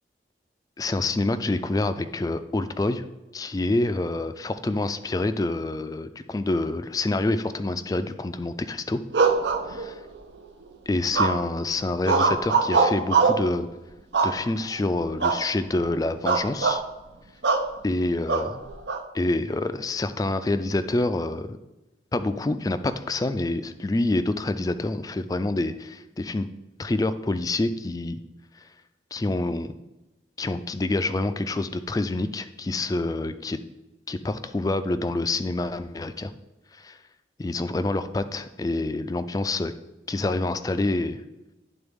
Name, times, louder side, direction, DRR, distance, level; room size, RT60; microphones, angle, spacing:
voice 1, 0.8-3.0 3.3-9.0 9.7-9.9 10.9-13.7 14.2-16.8 17.8-18.6 19.1-21.6 22.1-26.5 26.8-28.2 28.6-28.7 29.1-29.7 30.4-33.6 34.1-36.3 36.7-37.0 37.4-39.7 40.1-41.2, left 2 dB, 20° left, 11 dB, 0.3 m, -27 dB
sound 1, 9.1-10.2 11.1-11.6 12.0-13.5 14.1-14.7 15.2-15.5 15.8-15.9 16.3-16.8 17.4-17.7 18.3-19.0, right 4 dB, 80° right, 0.6 m, -22 dB
10.5 x 3.9 x 3.5 m, 1.0 s
head